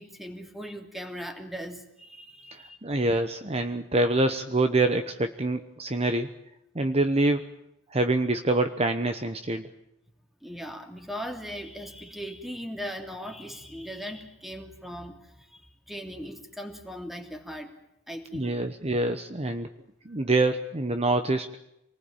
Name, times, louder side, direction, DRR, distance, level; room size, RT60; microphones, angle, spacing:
voice 1, 0.0-2.8 10.4-17.7 18.1-18.6, equal, ahead, 4 dB, 2.9 m, -39 dB
voice 2, 2.5-6.3 6.7-7.4 7.9-9.7 18.3-19.7 20.0-21.5, right 2 dB, 30° right, 8 dB, 1.1 m, -26 dB
27.0 x 19.5 x 9.0 m, 0.84 s
head